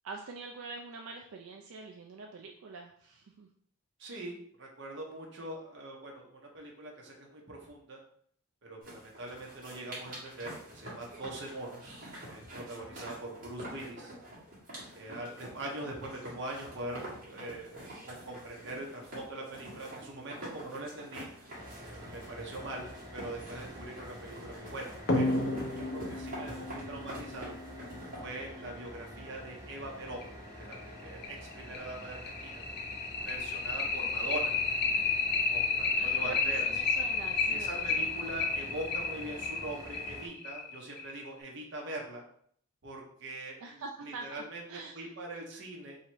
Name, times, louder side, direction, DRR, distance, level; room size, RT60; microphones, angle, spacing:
voice 1, 0.0-3.5 36.0-38.0 38.6-38.7 43.6-44.4 44.7-45.1, right 3 dB, 80° right, 2 dB, 0.4 m, -45 dB
voice 2, 4.0-8.0 8.6-12.0 12.3-14.1 14.9-21.3 21.8-27.6 28.2-30.3 30.6-32.6 33.3-34.6 35.5-36.7 37.5-42.2 42.8-44.6 44.9-46.0, right 1 dB, 55° right, -1 dB, 0.9 m, -42 dB
sound 1, 8.8-28.2, right 1 dB, 40° right, 1.5 m, -47 dB
sound 2, 21.5-40.3, equal, 15° right, 0.6 m, -47 dB
sound 3, 25.1-28.2 29.7-29.8 30.2-30.3 30.7-30.8 31.2-41.3, left 4 dB, 50° left, 0.6 m, -31 dB
2.9 x 2.8 x 4.4 m, 0.62 s
head